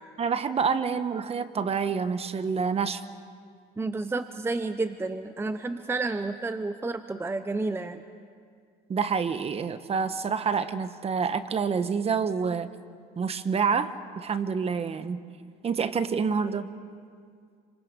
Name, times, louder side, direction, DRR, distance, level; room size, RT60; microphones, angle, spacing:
voice 1, 0.2-3.0 8.9-12.7 13.2-15.2 15.6-16.7, right 6 dB, 35° right, 11 dB, 1.1 m, -27 dB
voice 2, 3.8-8.0, right 3 dB, 15° right, 10 dB, 0.7 m, -30 dB
28.0 x 26.0 x 5.3 m, 2.2 s
cardioid pair, 110°, 17 cm